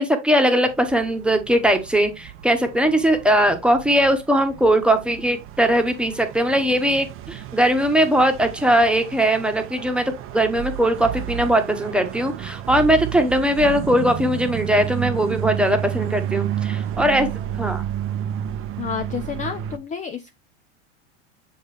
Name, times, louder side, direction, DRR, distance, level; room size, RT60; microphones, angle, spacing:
voice 1, 0.0-17.3 17.6-17.8, right 1 dB, 5° right, 1.3 m, -20 dB
sound 1, 0.7-19.8, right 11 dB, 35° right, 0.8 m, -31 dB
voice 2, 18.8-20.3, left 7 dB, 20° left, 0.7 m, -30 dB
7.2 x 4.6 x 3.4 m
hypercardioid pair, 105°, 36 cm